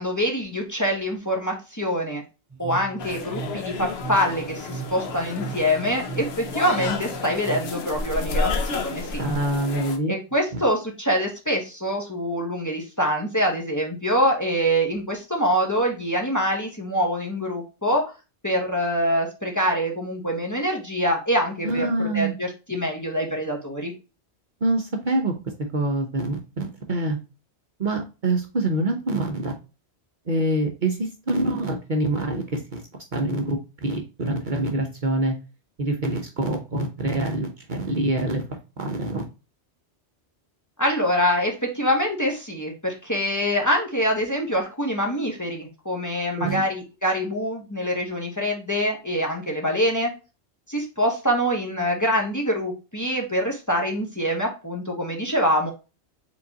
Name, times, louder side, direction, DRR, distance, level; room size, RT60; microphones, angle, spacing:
voice 1, 0.0-2.2 2.6-9.2 10.1-18.0 18.4-23.9 40.8-50.1 50.7-55.7, equal, 15° left, 0 dB, 1.2 m, -25 dB
sound 1, 2.5-7.7, right 7 dB, 20° right, 0.6 m, -37 dB
sound 2, 3.0-10.0, left 4 dB, 65° left, 1.0 m, -31 dB
voice 2, 9.2-10.1 10.5-10.6 21.6-22.3 24.6-25.3 25.7-27.2 27.8-29.6 30.3-32.8 33.1-35.3 35.8-39.2 46.4-46.6, right 2 dB, 50° right, 3 dB, 0.9 m, -25 dB
5.0 x 3.9 x 2.8 m, 0.30 s
omnidirectional pair, 1.2 m